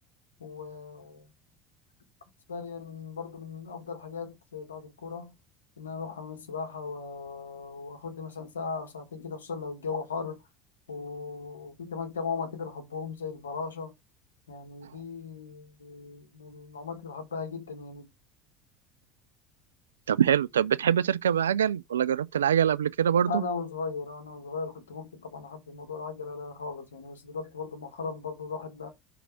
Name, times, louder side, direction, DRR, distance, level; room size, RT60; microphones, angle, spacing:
voice 1, 0.4-1.3 2.5-5.3 5.8-10.4 10.9-13.9 14.5-18.1 23.3-28.9, left 4 dB, 90° left, 1.5 m, -37 dB
voice 2, 20.1-23.4, right 9 dB, 85° right, 0.3 m, -24 dB
5.6 x 4.0 x 4.7 m
hypercardioid pair, 70°, 0 cm